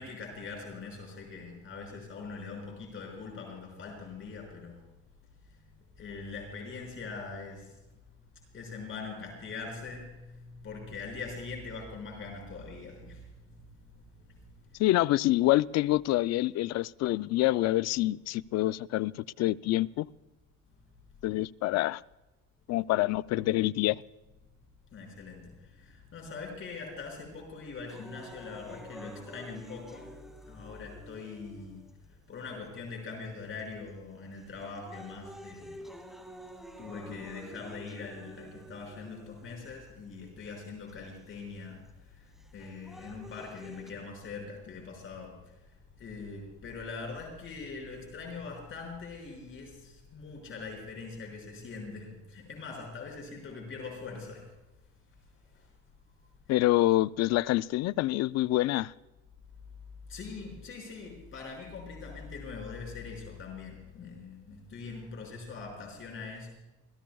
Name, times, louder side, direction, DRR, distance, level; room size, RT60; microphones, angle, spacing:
voice 1, 0.0-4.9 5.5-5.6 6.0-7.8 8.5-14.8 24.9-30.1 30.4-31.8 32.1-35.8 36.8-54.5 55.4-55.7 60.1-66.5, left 4 dB, 45° left, 6.0 m, -42 dB
voice 2, 14.8-20.1 21.2-22.0 22.7-24.0 56.5-58.9, left 16 dB, 65° left, 0.4 m, -26 dB
sound 1, 27.9-31.9 32.7-32.8 33.6-33.9 34.4-39.9 40.9-41.0 42.4-43.9, equal, ahead, 2.4 m, -49 dB
29.0 x 16.0 x 2.3 m
cardioid pair, 125°, 29 cm